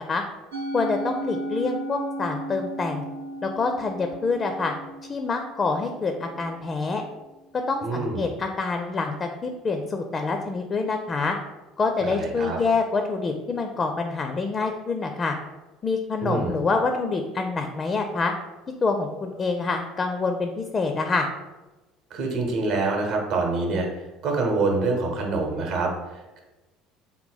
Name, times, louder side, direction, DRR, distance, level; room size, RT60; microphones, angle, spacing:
Musical instrument, 0.5-6.9, right 1 dB, 70° right, 0.5 m, -35 dB
voice 1, 0.7-3.0 3.4-4.7 5.1-7.0 7.7-11.4 11.8-15.3 15.8-18.3 18.8-21.3, left 4 dB, 30° left, 5 dB, 0.4 m, -26 dB
voice 2, 7.8-8.3 12.0-12.6 16.2-16.5 22.1-26.4, right 3 dB, 55° right, 1 dB, 0.9 m, -26 dB
3.8 x 2.2 x 3.9 m, 1.1 s
figure-of-eight pair, 60°, 0 cm